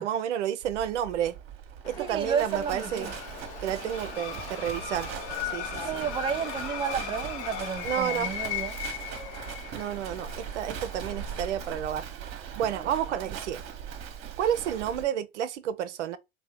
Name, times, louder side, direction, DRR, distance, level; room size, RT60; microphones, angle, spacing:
voice 1, 0.0-1.4 1.8-3.1 3.6-5.1 5.5-6.1 7.8-8.3 9.7-12.1 12.5-13.6 14.4-16.2, right 10 dB, 80° right, 0.5 m, -30 dB
Livestock farm animals working animals, 0.6-15.0, right 8 dB, 45° right, 0.8 m, -40 dB
sound 1, 1.8-11.8, left 9 dB, 65° left, 0.7 m, -38 dB
voice 2, 2.0-3.1 5.8-8.8, right 7 dB, 15° right, 0.3 m, -31 dB
2.7 x 2.2 x 3.4 m
hypercardioid pair, 80°, 35 cm